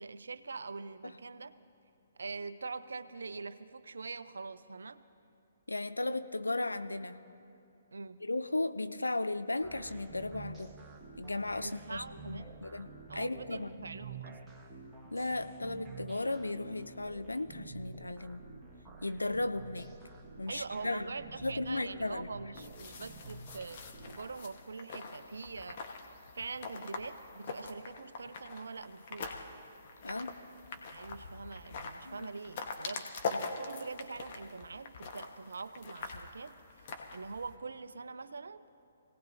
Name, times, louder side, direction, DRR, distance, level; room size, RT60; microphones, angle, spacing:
voice 1, 0.0-1.5 2.2-5.0 7.9-8.2 11.6-12.6 13.1-14.6 20.5-25.8 26.3-29.4 30.9-36.6 37.1-38.6, right 4 dB, 70° right, 13 dB, 0.6 m, -44 dB
voice 2, 5.7-7.2 8.2-10.8 11.2-12.9 13.1-13.8 15.1-18.5 19.0-19.9 20.4-21.1 21.4-22.3 30.0-30.4 32.0-32.3, left 2 dB, 85° left, 11 dB, 0.6 m, -35 dB
sound 1, 9.6-24.4, right 3 dB, 10° right, 1.5 m, -50 dB
sound 2, 22.6-37.6, left 4 dB, 45° left, 1.3 m, -44 dB
24.5 x 17.5 x 2.7 m, 2.8 s
figure-of-eight pair, 130°, 0 cm